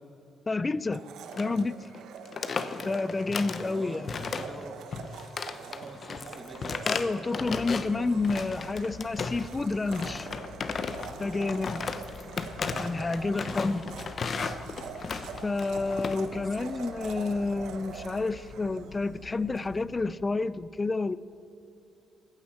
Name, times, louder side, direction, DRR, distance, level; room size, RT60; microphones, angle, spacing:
voice 1, 0.5-1.0 1.4-1.9 2.8-4.1 6.9-10.3 11.2-11.8 12.8-13.9 15.4-21.2, left 3 dB, 25° left, 18 dB, 0.5 m, -29 dB
Domestic sounds home sounds, 0.9-19.7, right 6 dB, 80° right, 1.0 m, -45 dB
sound 1, 1.3-1.6 1.8-2.0 2.3-3.7 4.1-4.6 4.9-7.9 8.2-9.6 9.9-16.2, left 5 dB, 45° left, 0.9 m, -35 dB
voice 2, 3.6-4.7 5.5-7.0 13.3-13.6, right 1 dB, 15° right, 3 dB, 1.9 m, -45 dB
sound 2, 7.4-20.2, left 5 dB, 85° left, 1.3 m, -48 dB
20.0 x 15.0 x 4.4 m, 2.9 s
cardioid pair, 90°, 0 cm